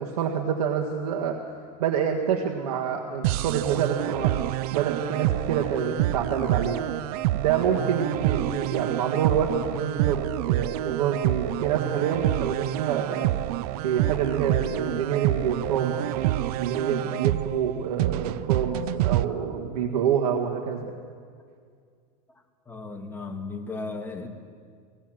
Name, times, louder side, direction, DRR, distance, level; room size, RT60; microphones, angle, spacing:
voice 1, 0.0-1.4 1.8-4.4 4.7-6.8 7.3-13.3 13.8-20.9, right 7 dB, 90° right, 0 dB, 1.7 m, -27 dB
sound 1, 3.2-19.2, right 15 dB, 70° right, 0.5 m, -27 dB
voice 2, 22.7-24.3, left 3 dB, 10° left, 2 dB, 1.9 m, -35 dB
18.5 x 18.0 x 7.7 m, 2.1 s
supercardioid pair, 130°, 20 cm